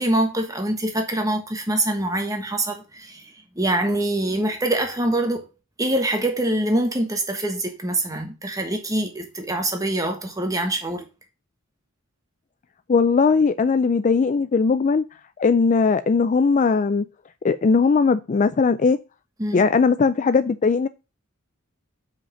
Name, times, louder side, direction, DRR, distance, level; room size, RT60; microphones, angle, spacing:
voice 1, 0.0-5.4 5.8-11.0 19.4-19.6, right 1 dB, 15° right, 1.3 m, -24 dB
voice 2, 12.9-15.0 15.4-17.1 17.4-19.0 19.5-20.9, left 4 dB, 35° left, 0.3 m, -19 dB
5.7 x 5.1 x 5.5 m
head